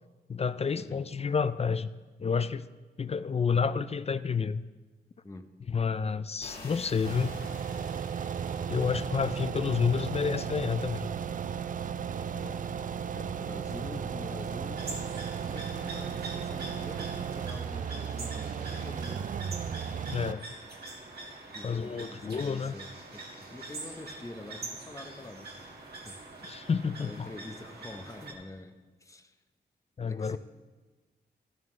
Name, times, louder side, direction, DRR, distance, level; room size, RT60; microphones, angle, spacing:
voice 1, 0.3-1.9 2.2-2.7 3.0-4.6 5.7-7.4 8.7-11.1 20.1-20.5 21.6-22.7 26.4-27.3 30.0-30.4, left 6 dB, 35° left, 14 dB, 0.4 m, -29 dB
sound 1, 6.4-15.0, left 2 dB, 60° left, 2.3 m, -52 dB
sound 2, 7.0-20.3, right 7 dB, 50° right, 0.4 m, -35 dB
voice 2, 13.1-19.3 21.5-26.2 26.5-26.6 27.0-28.7 29.0-29.4 30.1-30.4, left 2 dB, 15° left, 7 dB, 0.9 m, -45 dB
sound 3, 14.8-28.3, right 2 dB, 65° right, 2.0 m, -44 dB
12.5 x 11.0 x 3.2 m, 1.3 s
cardioid pair, 60°, 18 cm